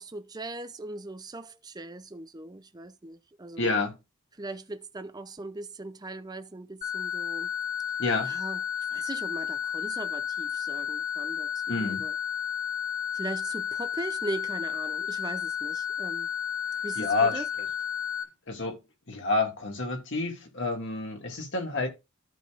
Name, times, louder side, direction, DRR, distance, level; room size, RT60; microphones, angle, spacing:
voice 1, 0.0-3.7 4.3-7.5 8.2-12.1 13.1-16.3 16.8-17.5, right 2 dB, 20° right, 0.6 m, -39 dB
voice 2, 3.6-4.0 8.0-8.3 11.7-12.1 17.0-17.4 18.5-18.8 19.1-21.9, left 3 dB, 55° left, 2.1 m, -28 dB
sound 1, 6.8-18.2, left 9 dB, 40° left, 2.1 m, -32 dB
13.5 x 5.3 x 2.5 m
head